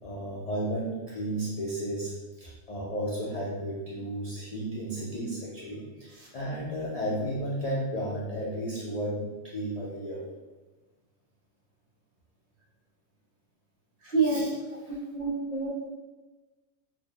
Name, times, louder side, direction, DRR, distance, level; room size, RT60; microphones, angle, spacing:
voice 1, 0.0-10.3 14.2-14.5 14.8-15.0, right 1 dB, 85° left, -5 dB, 0.3 m, -33 dB
voice 2, 14.0-14.4 14.9-15.9, right 4 dB, 50° right, -5 dB, 0.9 m, -28 dB
2.9 x 2.1 x 3.6 m, 1.2 s
omnidirectional pair, 1.3 m